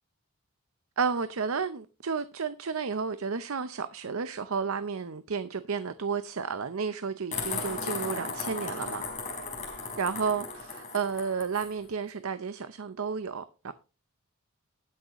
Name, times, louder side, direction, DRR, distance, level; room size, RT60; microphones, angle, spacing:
voice 1, 1.0-9.0 10.0-13.7, right 5 dB, 70° right, 0.7 m, -32 dB
sound 1, 7.3-11.7, left 4 dB, 35° left, 4.5 m, -36 dB
19.5 x 6.6 x 3.0 m
head